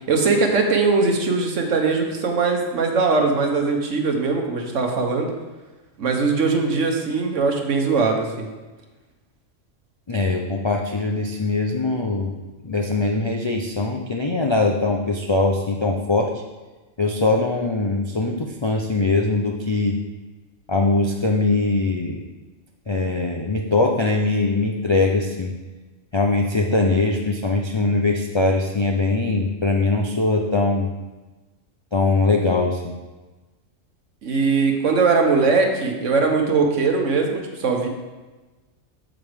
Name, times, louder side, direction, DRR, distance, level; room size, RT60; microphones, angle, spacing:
voice 1, 0.1-5.3 6.0-8.5 34.2-37.9, right 4 dB, 70° right, 3 dB, 1.4 m, -20 dB
voice 2, 10.1-12.3 12.6-16.3 17.0-20.0 20.7-22.2 22.9-25.5 26.1-30.9 31.9-33.0, left 3 dB, 45° left, 1 dB, 0.3 m, -21 dB
7.8 x 7.3 x 3.5 m, 1.2 s
omnidirectional pair, 1.4 m